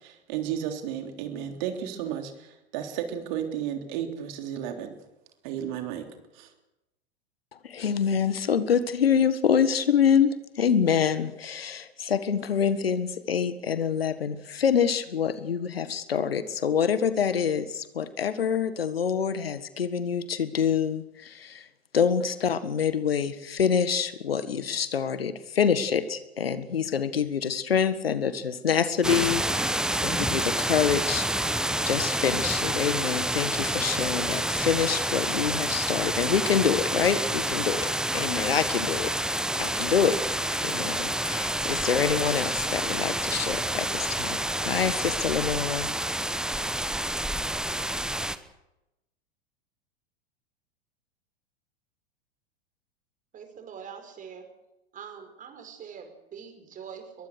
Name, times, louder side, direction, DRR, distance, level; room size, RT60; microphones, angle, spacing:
voice 1, 0.0-5.0 5.4-6.1 6.3-6.5, right 9 dB, 45° right, 5 dB, 3.5 m, -33 dB
voice 2, 7.5-21.7 21.9-39.1 39.5-40.2 40.6-44.4 44.6-45.9, left 7 dB, 70° left, 13 dB, 1.6 m, -26 dB
sound 1, 29.0-48.4, right 1 dB, ahead, 1.0 m, -28 dB
voice 3, 53.3-54.5 54.9-57.3, right 7 dB, 25° right, 7 dB, 5.0 m, -43 dB
22.0 x 22.0 x 6.6 m, 0.95 s
figure-of-eight pair, 90°, 31 cm